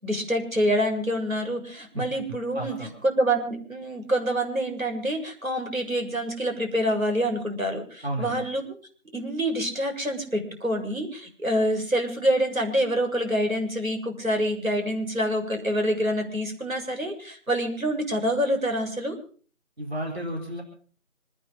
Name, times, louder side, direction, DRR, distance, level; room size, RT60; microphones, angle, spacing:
voice 1, 0.0-2.8 3.0-8.8 9.1-19.2, equal, 75° right, 3 dB, 7.3 m, -26 dB
voice 2, 2.5-2.9 8.0-8.5 19.8-20.6, right 1 dB, 50° right, 0 dB, 4.5 m, -32 dB
26.5 x 10.0 x 5.3 m, 0.43 s
figure-of-eight pair, 180°, 41 cm